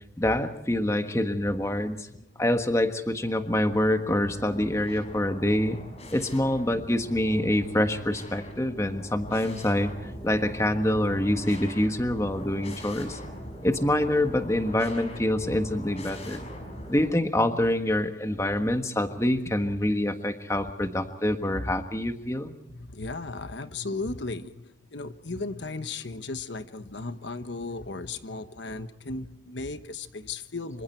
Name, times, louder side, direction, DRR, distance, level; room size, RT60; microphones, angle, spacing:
voice 1, 0.2-2.1 2.4-5.8 6.1-13.2 13.6-16.5 16.9-22.5, left 1 dB, 15° left, 7 dB, 1.4 m, -26 dB
sound 1, 4.0-17.1, equal, 30° left, 5.8 m, -41 dB
voice 2, 22.7-30.8, left 3 dB, 70° left, 10 dB, 1.1 m, -36 dB
27.0 x 25.5 x 4.5 m, 0.84 s
head